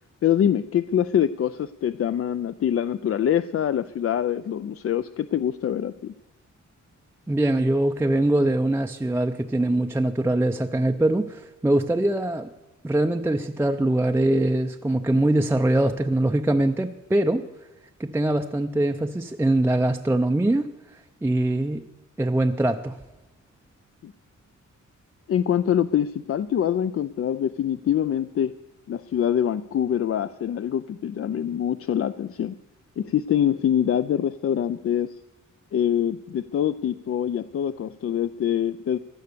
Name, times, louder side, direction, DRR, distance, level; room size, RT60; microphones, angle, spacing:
voice 1, 0.2-6.1 24.0-24.1 25.3-28.5 28.9-32.6 33.0-35.1 35.7-39.0, left 9 dB, 50° left, 13 dB, 0.4 m, -24 dB
voice 2, 7.3-12.5 12.8-17.4 18.0-20.7 21.2-21.8 22.2-23.0, right 1 dB, 10° right, 5 dB, 0.5 m, -22 dB
16.5 x 11.5 x 6.7 m, 1.0 s
wide cardioid pair, 165°, 31 cm